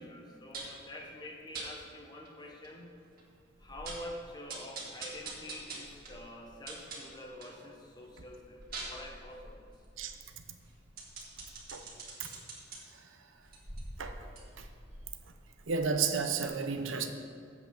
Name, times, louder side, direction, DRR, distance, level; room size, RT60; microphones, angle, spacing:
voice 1, 0.0-2.9 3.6-9.7, left 1 dB, 20° left, 1 dB, 1.1 m, -47 dB
sound 1, 0.5-0.8 1.5-1.7 2.3-2.4 2.6-2.7 3.2-3.3 3.6-4.1 4.5-7.6 8.0-12.8 13.4-16.1 16.4-16.5, right 3 dB, 50° right, 1.8 m, -45 dB
voice 2, 15.7-17.1, right 5 dB, 85° right, 6 dB, 0.7 m, -32 dB
7.8 x 5.9 x 6.8 m, 2.3 s
head